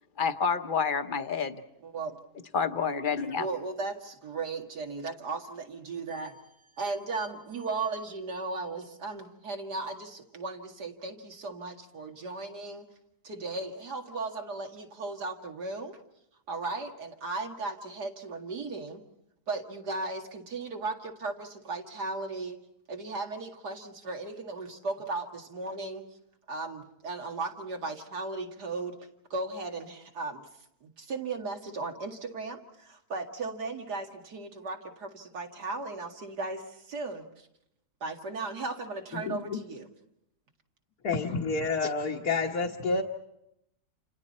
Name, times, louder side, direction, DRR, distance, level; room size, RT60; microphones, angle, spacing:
voice 1, 0.2-1.6 2.5-3.5, left 6 dB, 40° left, 8 dB, 0.9 m, -28 dB
voice 2, 1.8-2.2 3.4-6.4 6.8-12.9 13.2-16.0 16.5-19.0 19.5-22.6 22.9-26.1 26.5-29.0 29.3-30.5 30.8-37.5 38.0-39.9, right 3 dB, 85° right, 3 dB, 2.6 m, -36 dB
voice 3, 39.2-39.6 41.0-43.0, left 4 dB, 70° left, -1 dB, 1.8 m, -29 dB
29.0 x 28.5 x 4.3 m, 0.81 s
omnidirectional pair, 1.7 m